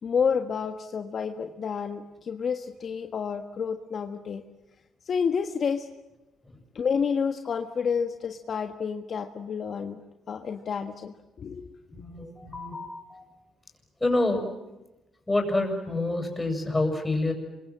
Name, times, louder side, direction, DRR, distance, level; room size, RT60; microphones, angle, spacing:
voice 1, 0.0-4.4 5.0-5.9 6.7-10.0 10.3-11.7, left 6 dB, 55° left, 6 dB, 1.5 m, -29 dB
voice 2, 11.9-13.2 14.0-14.5 15.3-17.3, left 2 dB, 15° left, 4 dB, 7.2 m, -27 dB
27.5 x 24.0 x 7.6 m, 1.0 s
cardioid pair, 90°, 0 cm